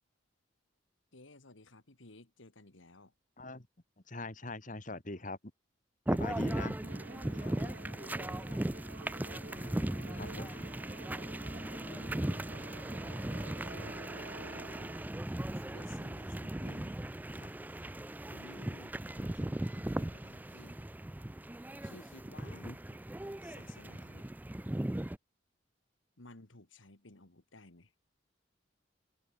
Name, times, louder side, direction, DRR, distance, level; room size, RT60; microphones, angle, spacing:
voice 1, 1.1-3.1 7.3-8.6 9.4-10.8 11.5-12.8 13.4-14.8 15.6-17.0 17.3-20.8 21.8-22.7 23.4-24.3 26.2-27.9, left 2 dB, 85° left, 2.5 m, -56 dB
voice 2, 4.1-5.4 6.1-6.8 10.2-10.5 22.6-22.8, left 2 dB, 40° left, 2.3 m, -42 dB
sound 1, 6.1-25.2, right 1 dB, 10° right, 0.4 m, -38 dB
Musical instrument, 6.8-15.3, right 2 dB, 60° right, 2.2 m, -50 dB
head